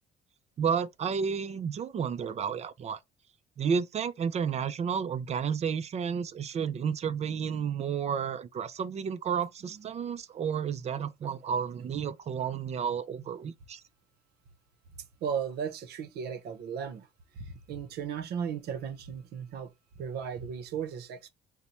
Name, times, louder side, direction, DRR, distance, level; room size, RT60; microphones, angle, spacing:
voice 1, 0.6-3.0 3.6-13.8, right 7 dB, 40° right, 0.5 m, -31 dB
voice 2, 15.2-17.1 17.3-19.7 20.0-21.3, right 7 dB, 70° right, 0.8 m, -36 dB
4.0 x 2.2 x 4.4 m
cardioid pair, 110°, 17 cm